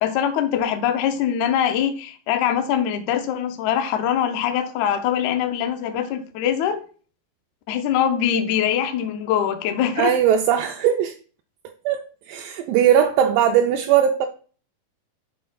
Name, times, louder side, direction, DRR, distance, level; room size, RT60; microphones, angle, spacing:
voice 1, 0.0-6.8 7.7-10.1, left 9 dB, 90° left, 1.7 m, -23 dB
voice 2, 10.0-11.2 11.9-14.3, right 9 dB, 80° right, 2.1 m, -19 dB
11.5 x 4.3 x 2.3 m
omnidirectional pair, 4.2 m